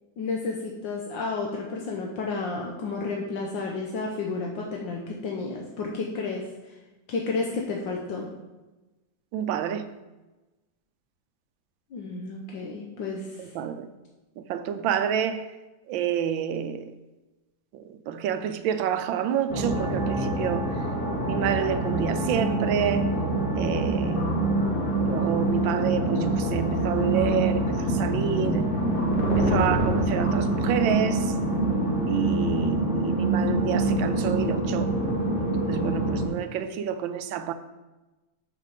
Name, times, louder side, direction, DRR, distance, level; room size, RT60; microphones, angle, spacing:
voice 1, 0.2-6.7 7.1-8.3 11.9-13.5, left 3 dB, 75° left, 1.6 m, -31 dB
voice 2, 9.3-9.9 13.4-13.9 14.4-15.5 15.9-16.9 17.7-20.8 21.2-23.1 23.5-24.3 25.0-28.7 29.3-31.3 32.1-34.9 35.4-37.5, right 9 dB, 85° right, 1.4 m, -29 dB
sound 1, 19.5-36.3, right 1 dB, 30° left, 1.5 m, -25 dB
6.6 x 6.5 x 5.2 m
omnidirectional pair, 2.1 m